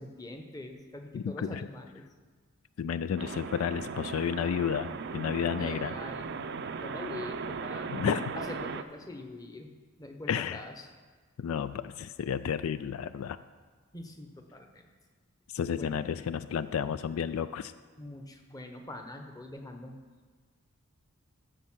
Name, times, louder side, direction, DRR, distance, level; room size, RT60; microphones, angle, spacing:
voice 1, 0.0-2.1 5.5-6.4 6.8-8.0 8.3-9.7 10.0-10.9 13.9-14.8 15.7-16.1 18.0-20.0, left 1 dB, 15° left, 4 dB, 0.9 m, -43 dB
voice 2, 1.1-1.7 2.8-5.9 7.9-8.3 10.3-10.6 11.4-13.4 15.5-17.7, left 7 dB, 75° left, 13 dB, 0.3 m, -32 dB
sound 1, 3.2-8.8, right 5 dB, 55° right, 0.5 m, -37 dB
14.5 x 5.3 x 6.1 m, 1.5 s
head